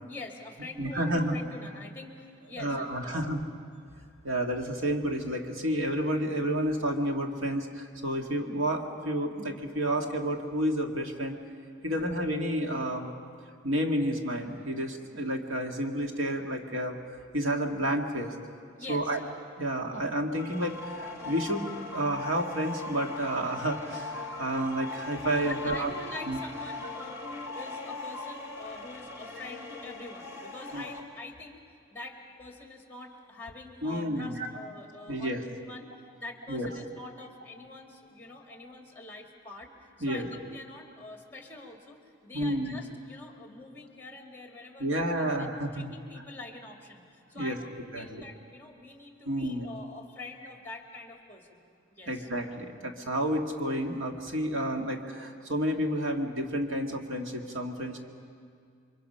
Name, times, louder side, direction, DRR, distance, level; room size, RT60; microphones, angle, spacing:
voice 1, 0.1-3.3 3.9-4.1 11.8-12.1 18.8-19.1 25.4-31.6 31.9-35.9 36.2-39.7 40.0-52.3, left 2 dB, 10° left, 2 dB, 2.2 m, -45 dB
voice 2, 0.8-1.4 2.6-3.4 4.2-11.4 11.8-13.1 13.6-17.0 17.3-18.3 18.9-19.2 19.6-25.9 26.3-26.4 30.7-30.8 33.8-34.5 35.1-35.4 36.5-36.7 40.0-40.2 42.3-42.8 44.8-45.9 47.3-47.6 47.9-48.2 49.3-49.7 52.1-58.0, right 1 dB, 85° right, 2 dB, 2.1 m, -30 dB
sound 1, 20.3-31.0, left 3 dB, 15° right, 2.7 m, -40 dB
29.0 x 24.0 x 5.7 m, 2.3 s
head